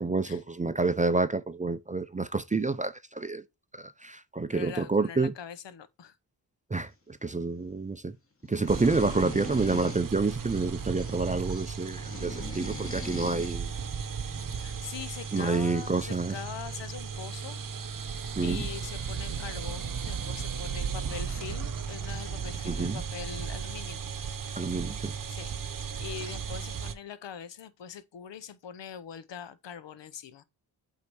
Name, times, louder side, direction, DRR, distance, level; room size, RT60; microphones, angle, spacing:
voice 1, 0.0-3.4 3.8-5.3 6.7-8.2 8.5-13.7 15.3-16.4 18.4-18.6 22.6-23.0 24.5-25.1, right 3 dB, 20° right, 0.4 m, -28 dB
voice 2, 4.5-6.2 14.5-17.6 18.4-24.0 25.3-25.5 26.0-30.4, left 8 dB, 75° left, 0.8 m, -42 dB
sound 1, 8.4-10.1 10.5-11.2 11.5-13.6 14.7-14.8 15.2-15.4, left 3 dB, 30° left, 1.4 m, -42 dB
sound 2, 8.7-26.9, right 6 dB, 45° right, 0.8 m, -35 dB
8.2 x 2.8 x 4.7 m
cardioid pair, 75°, 44 cm